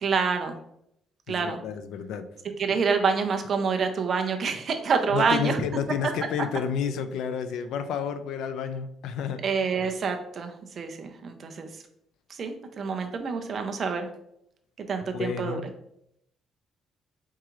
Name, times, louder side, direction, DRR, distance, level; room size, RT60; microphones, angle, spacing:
voice 1, 0.0-0.6 1.3-1.6 2.6-5.6 9.4-11.7 12.4-14.1 14.9-15.6, right 5 dB, 35° right, 5 dB, 0.5 m, -27 dB
voice 2, 1.3-2.2 5.1-9.4 15.1-15.7, left 7 dB, 75° left, 10 dB, 0.4 m, -30 dB
4.6 x 3.6 x 3.0 m, 0.75 s
cardioid pair, 165°, 0 cm